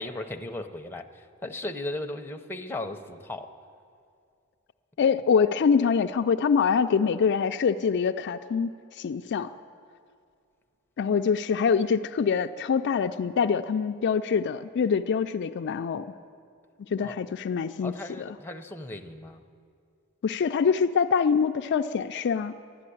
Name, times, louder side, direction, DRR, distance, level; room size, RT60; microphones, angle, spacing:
voice 1, 0.0-3.5 17.0-17.2 17.8-19.4, left 2 dB, 10° left, 4 dB, 0.6 m, -36 dB
voice 2, 5.0-9.5 11.0-16.1 16.9-17.9 20.2-22.6, left 6 dB, 50° left, 7 dB, 0.3 m, -24 dB
11.5 x 11.5 x 9.9 m, 2.3 s
head